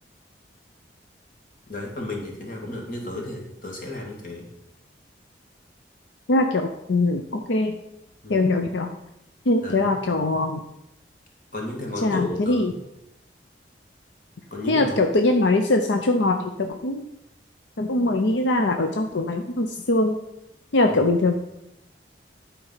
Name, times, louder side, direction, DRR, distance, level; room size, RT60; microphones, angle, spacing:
voice 1, 1.7-4.5 8.2-8.5 9.6-9.9 11.5-12.8 14.5-15.0 20.9-21.0, left 2 dB, 45° left, 0 dB, 2.0 m, -33 dB
voice 2, 6.3-7.8 8.3-8.9 9.5-10.6 12.0-12.7 14.7-17.0 17.8-20.2 20.7-21.6, left 2 dB, 80° left, 5 dB, 0.6 m, -22 dB
11.0 x 4.7 x 5.6 m, 0.87 s
head